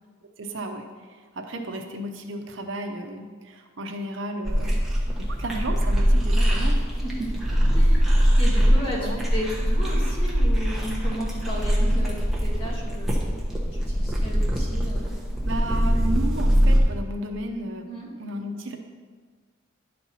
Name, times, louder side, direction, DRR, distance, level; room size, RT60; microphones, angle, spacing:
voice 1, 0.4-4.7 5.0-6.9 7.2-7.3 8.5-9.2 15.4-17.9 18.2-18.8, right 1 dB, 65° right, 4 dB, 0.7 m, -33 dB
sound 1, 4.5-16.8, equal, ahead, 1.0 m, -22 dB
voice 2, 7.7-13.4 13.7-15.2 17.8-18.1, equal, 25° left, -5 dB, 1.6 m, -34 dB
11.0 x 4.3 x 4.2 m, 1.5 s
head